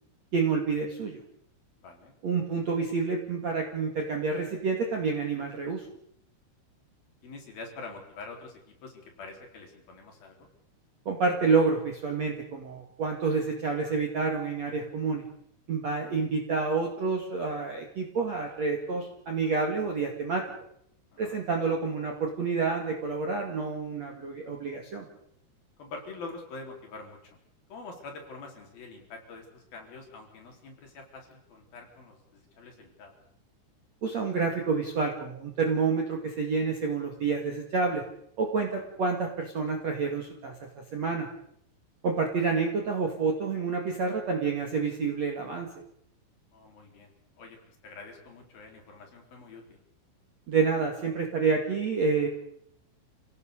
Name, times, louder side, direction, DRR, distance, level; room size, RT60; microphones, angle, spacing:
voice 1, 0.3-1.2 2.2-5.9 11.1-15.2 15.7-20.4 21.2-25.1 34.0-38.0 38.4-40.5 40.9-41.3 42.0-45.7 50.5-52.3, right 4 dB, 45° right, 2 dB, 2.5 m, -28 dB
voice 2, 1.8-2.1 7.2-10.5 21.1-21.4 25.8-27.2 27.7-33.1 38.7-38.9 46.5-49.8, left 3 dB, 50° left, 2 dB, 5.4 m, -45 dB
29.0 x 17.5 x 6.7 m, 0.72 s
omnidirectional pair, 5.8 m